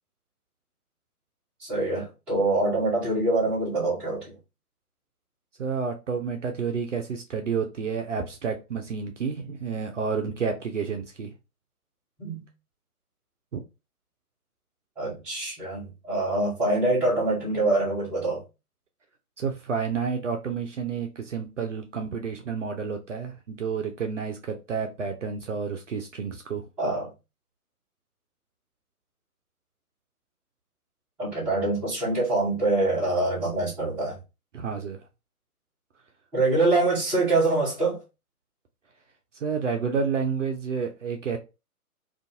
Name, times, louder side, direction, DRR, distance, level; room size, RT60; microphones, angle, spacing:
voice 1, 1.6-4.3 12.2-12.4 15.0-18.4 26.8-27.1 31.2-34.2 36.3-38.0, right 2 dB, 5° right, 0.7 m, -25 dB
voice 2, 5.6-11.3 13.5-13.6 19.4-26.6 34.5-35.0 39.4-41.4, right 6 dB, 55° right, 0.5 m, -30 dB
2.5 x 2.4 x 2.6 m
figure-of-eight pair, 130°, 46 cm